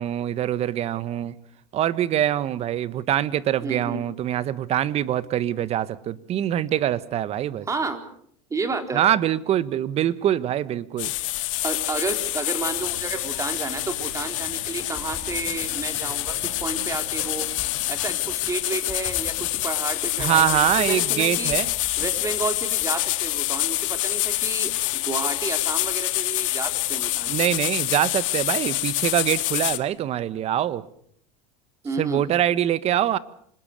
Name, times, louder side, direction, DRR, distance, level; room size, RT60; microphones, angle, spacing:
voice 1, 0.0-1.3 1.7-7.6 8.9-11.1 20.2-21.7 27.3-30.8 32.0-33.2, right 11 dB, 40° right, 16 dB, 1.4 m, -24 dB
voice 2, 3.6-4.0 7.7-8.0 8.5-9.0 11.6-17.5 17.9-21.6 22.0-27.3 31.8-32.3, right 4 dB, 20° right, 7 dB, 3.9 m, -31 dB
sound 1, 11.0-29.8, left 19 dB, 80° left, 1.7 m, -26 dB
sound 2, 12.6-18.0, right 7 dB, 80° right, 2.9 m, -46 dB
sound 3, 14.4-22.8, left 4 dB, 15° left, 5.3 m, -43 dB
26.0 x 20.5 x 6.7 m, 0.64 s
supercardioid pair, 120°, 17 cm